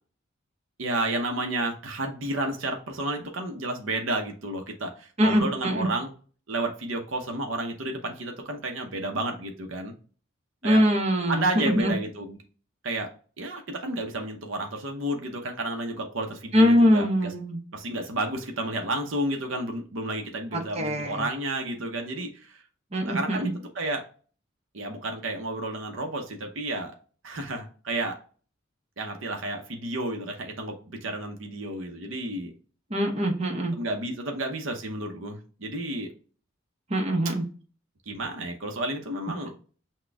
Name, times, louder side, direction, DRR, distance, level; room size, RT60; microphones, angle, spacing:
voice 1, 0.8-6.1 6.5-9.9 10.6-10.8 11.3-12.4 12.8-13.1 13.4-17.1 17.7-22.6 23.0-24.1 24.7-27.0 27.2-28.2 29.0-32.5 33.8-36.1 38.1-39.5, right 2 dB, 85° right, 3 dB, 0.8 m, -31 dB
voice 2, 5.2-5.9 10.6-11.9 16.5-17.6 20.5-21.3 22.9-23.5 32.9-33.8 36.9-37.4, equal, 35° right, 1 dB, 0.9 m, -23 dB
6.1 x 2.3 x 3.3 m, 0.39 s
head